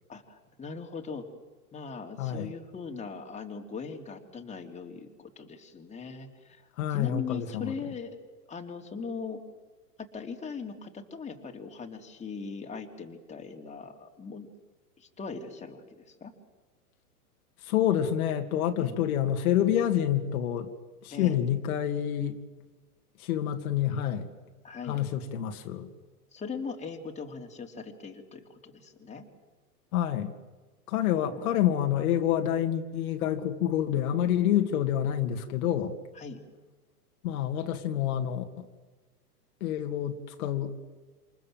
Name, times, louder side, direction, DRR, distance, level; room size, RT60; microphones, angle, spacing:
voice 1, 0.1-1.2 1.7-8.2 8.5-9.4 10.0-14.5 15.0-16.3 18.8-19.0 21.1-21.4 24.6-25.0 26.3-29.2 31.2-31.5 36.1-36.4, left 5 dB, 15° left, 2 dB, 3.0 m, -40 dB
voice 2, 2.2-2.5 6.8-7.7 17.6-20.7 21.0-22.4 23.2-24.3 24.8-25.9 29.9-30.3 30.9-36.0 37.2-38.7 39.6-40.7, left 10 dB, 60° left, 5 dB, 2.6 m, -28 dB
28.0 x 27.5 x 7.6 m, 1.3 s
hypercardioid pair, 120°, 47 cm